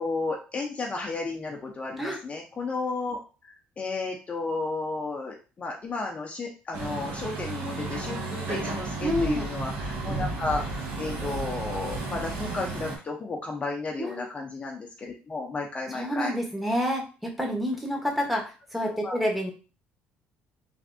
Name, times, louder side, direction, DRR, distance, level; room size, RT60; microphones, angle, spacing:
voice 1, 0.0-10.6 11.0-16.3 19.0-19.2, left 3 dB, 30° left, 0 dB, 0.6 m, -33 dB
Truck, 6.7-13.0, right 3 dB, 75° right, 1.2 m, -33 dB
voice 2, 9.0-9.5 14.0-14.2 15.9-19.5, equal, 5° right, 0 dB, 1.0 m, -28 dB
3.3 x 2.5 x 2.6 m, 0.35 s
cardioid pair, 95°, 4 cm